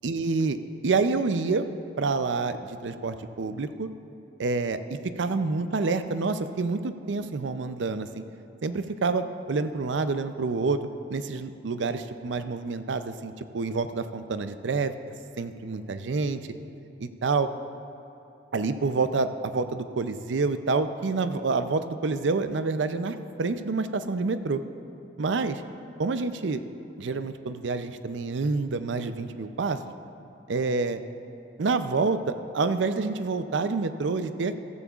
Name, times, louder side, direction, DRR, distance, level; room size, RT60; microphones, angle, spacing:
voice 1, 0.0-0.6 0.8-1.7 2.0-3.9 4.4-8.2 8.6-10.8 11.1-14.9 15.4-16.4 17.2-17.5 18.5-24.6 25.2-25.6 26.0-26.6 27.0-29.8 30.5-31.0 31.6-34.6, right 4 dB, 80° right, 10 dB, 0.5 m, -27 dB
14.0 x 13.5 x 2.4 m, 2.8 s
head